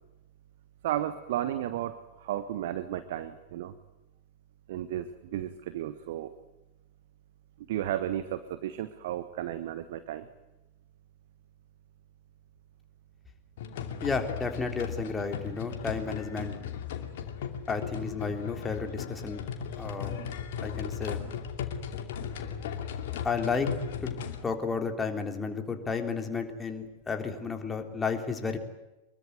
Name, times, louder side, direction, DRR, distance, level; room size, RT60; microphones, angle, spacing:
voice 1, 0.8-3.8 4.7-6.3 7.6-10.3, right 12 dB, 55° right, 12 dB, 1.4 m, -33 dB
sound 1, 13.6-24.4, left 7 dB, 55° left, 2.7 m, -36 dB
voice 2, 14.0-16.6 17.7-19.4 19.8-20.1 20.6-21.2 23.2-23.7 24.0-24.1 24.4-28.6, left 5 dB, 15° left, 5 dB, 3.5 m, -32 dB
24.5 x 22.5 x 9.4 m, 0.99 s
figure-of-eight pair, 90°, 0 cm